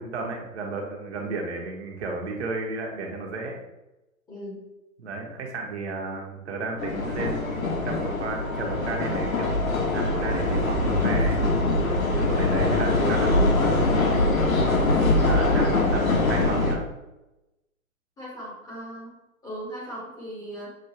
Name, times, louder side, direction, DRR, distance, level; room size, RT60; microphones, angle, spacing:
voice 1, 0.0-3.5 5.0-9.5 9.9-11.4 12.1-13.3 15.1-16.8, right 3 dB, 50° right, 1 dB, 1.0 m, -33 dB
voice 2, 4.3-4.6 14.2-14.5 18.2-19.2 19.4-20.7, equal, 10° left, -7 dB, 0.7 m, -38 dB
sound 1, 6.8-16.7, left 2 dB, 70° left, 1.1 m, -23 dB
6.1 x 2.4 x 2.8 m, 0.96 s
figure-of-eight pair, 130°, 43 cm